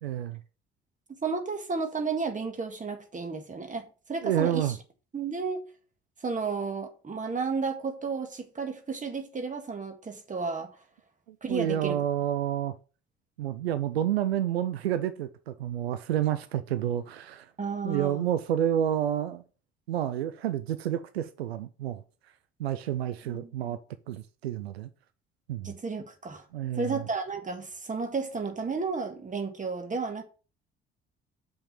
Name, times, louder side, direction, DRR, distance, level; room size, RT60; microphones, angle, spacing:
voice 1, 0.0-0.4 4.2-4.8 11.3-12.7 13.4-17.5 17.8-19.4 19.9-22.0 22.6-23.8 24.1-24.9 25.5-25.7 26.5-27.0, right 11 dB, 80° right, 0.5 m, -29 dB
voice 2, 1.1-4.8 5.1-5.6 6.2-10.8 11.4-12.0 17.6-18.3 23.3-23.8 25.6-26.5 26.7-30.2, right 4 dB, 25° right, 1.7 m, -33 dB
6.6 x 5.8 x 5.6 m
figure-of-eight pair, 50°, 31 cm